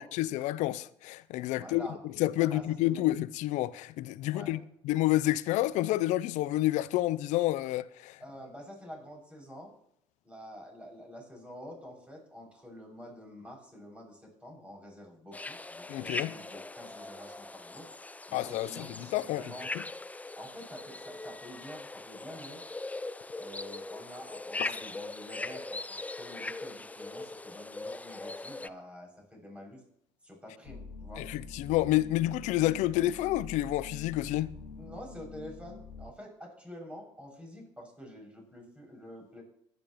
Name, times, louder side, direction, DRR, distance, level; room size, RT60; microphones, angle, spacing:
voice 1, 0.0-1.9 2.2-8.2 15.9-16.3 18.3-18.9 19.1-19.4 24.6-24.7 31.2-34.5, left 16 dB, 65° left, 0.6 m, -29 dB
voice 2, 1.6-2.0 2.4-3.1 4.2-4.6 8.2-9.7 10.2-17.9 18.3-19.7 20.4-22.6 23.4-29.8 30.2-31.2 34.7-39.4, equal, 10° right, 6.6 m, -47 dB
sound 1, 15.3-28.7, left 2 dB, 10° left, 0.5 m, -41 dB
sound 2, 30.6-36.1, left 4 dB, 80° left, 1.9 m, -46 dB
21.0 x 11.0 x 3.1 m
hypercardioid pair, 65°, 13 cm